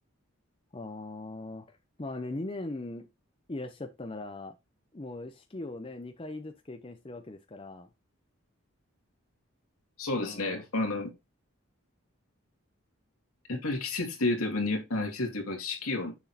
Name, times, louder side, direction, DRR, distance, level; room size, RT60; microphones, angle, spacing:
voice 1, 0.7-3.1 3.5-4.6 4.9-7.9 10.2-10.6, left 2 dB, 25° left, 0.6 m, -40 dB
voice 2, 10.0-11.1 13.5-16.2, left 2 dB, 80° left, 2.4 m, -31 dB
7.0 x 6.2 x 2.8 m
head